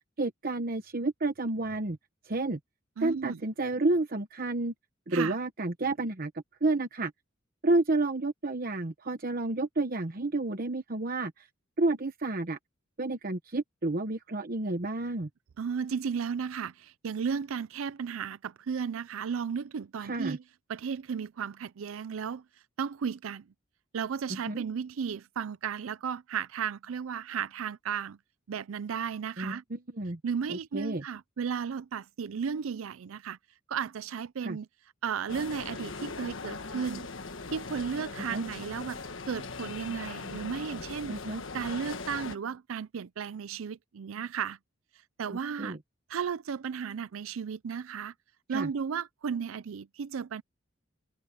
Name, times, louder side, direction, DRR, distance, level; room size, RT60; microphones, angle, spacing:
voice 1, 0.2-2.0 2.2-2.6 3.0-4.7 5.1-7.1 7.6-11.5 11.8-12.6 13.0-15.3 20.0-20.4 24.3-24.6 29.4-30.2 30.5-31.0 34.4-34.6 38.3-38.4 41.1-41.4 45.3-45.8 48.5-48.7, right 2 dB, 45° right, 1.0 m, -30 dB
voice 2, 3.0-3.4 5.1-5.4 15.6-20.4 20.7-22.4 22.8-23.4 23.9-28.2 28.5-29.6 30.2-33.4 33.7-34.7 35.0-37.1 37.5-39.0 39.3-41.2 41.5-44.6 45.2-45.8 46.1-48.1 48.5-50.4, right 6 dB, 90° right, 0.4 m, -34 dB
sound 1, 35.3-42.4, left 4 dB, 70° left, 1.4 m, -40 dB
head